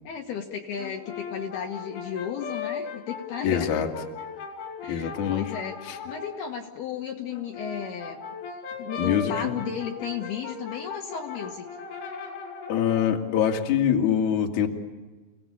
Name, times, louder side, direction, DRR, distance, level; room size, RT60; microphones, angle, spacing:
voice 1, 0.0-3.8 4.8-8.2 8.5-11.7, left 8 dB, 65° left, 1 dB, 3.1 m, -34 dB
Brass instrument, 0.8-6.4 7.3-13.1, left 5 dB, 90° left, 6.7 m, -38 dB
voice 2, 3.4-3.9 4.9-5.5 5.9-6.0 9.0-9.5 12.7-14.7, left 9 dB, 50° left, 2 dB, 2.7 m, -24 dB
29.5 x 18.5 x 8.7 m, 1.3 s
omnidirectional pair, 5.5 m